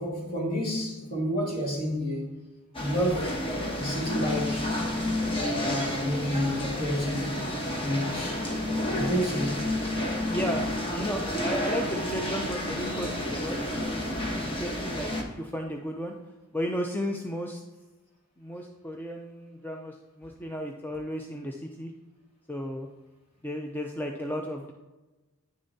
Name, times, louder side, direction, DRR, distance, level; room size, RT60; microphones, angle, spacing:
voice 1, 0.0-2.4 2.8-3.4 3.7-4.7 5.4-8.5 8.9-9.6, equal, 40° left, 2.0 m, -30 dB
sound 1, 2.7-15.2, left 1 dB, 25° left, 1.1 m, -30 dB
voice 2, 10.3-14.0 14.3-16.1 16.5-17.6 18.4-21.9 22.5-22.9 23.4-24.7, equal, 10° left, 0.4 m, -34 dB
9.7 x 6.6 x 2.7 m
head